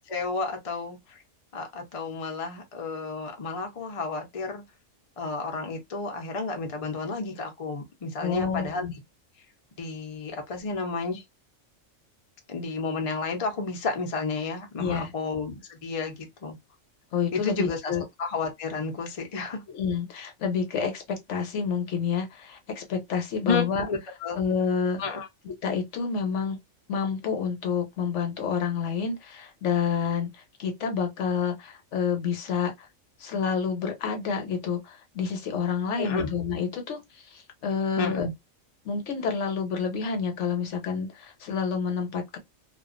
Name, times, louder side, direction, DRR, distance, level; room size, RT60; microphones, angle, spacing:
voice 1, 0.1-1.2 1.5-4.6 5.2-8.9 9.8-11.2 12.5-16.6 17.3-19.6 23.5-24.4 25.0-25.3 36.0-36.3 38.0-38.3, left 4 dB, 40° left, 0.5 m, -31 dB
voice 2, 8.2-8.9 14.8-15.1 17.1-18.0 19.7-23.9 24.3-25.0 25.4-26.6 26.9-30.3 30.6-32.9 33.2-37.0 37.3-38.3 38.8-42.4, left 6 dB, 70° left, 1.0 m, -28 dB
2.4 x 2.2 x 2.4 m
omnidirectional pair, 1.3 m